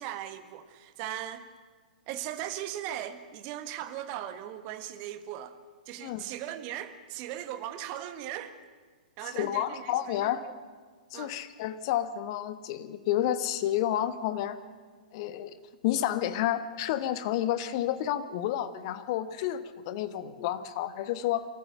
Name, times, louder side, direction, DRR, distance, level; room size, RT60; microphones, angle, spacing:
voice 1, 0.0-1.5 2.1-5.5 5.9-8.6 9.2-10.5 11.1-11.4, right 12 dB, 30° right, 10 dB, 1.4 m, -38 dB
voice 2, 9.3-10.5 11.1-14.6 15.1-15.6 15.8-21.5, left 12 dB, 40° left, 12 dB, 1.1 m, -30 dB
24.5 x 14.0 x 7.7 m, 1.5 s
figure-of-eight pair, 115°, 5 cm